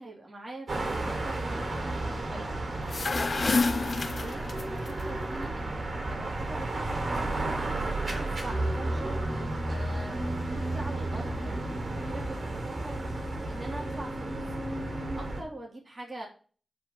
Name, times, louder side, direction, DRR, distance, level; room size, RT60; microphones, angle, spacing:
voice 1, 0.0-7.2 7.7-13.0 13.5-14.5 15.1-16.3, right 1 dB, 25° right, -2 dB, 3.3 m, -43 dB
sound 1, 0.7-15.4, right 2 dB, 60° right, 3.7 m, -32 dB
sound 2, 1.5-9.5, equal, 20° left, 2.3 m, -45 dB
sound 3, 2.7-4.9, left 4 dB, 50° left, 0.4 m, -28 dB
8.9 x 5.3 x 7.4 m, 0.39 s
wide cardioid pair, 125°, 0 cm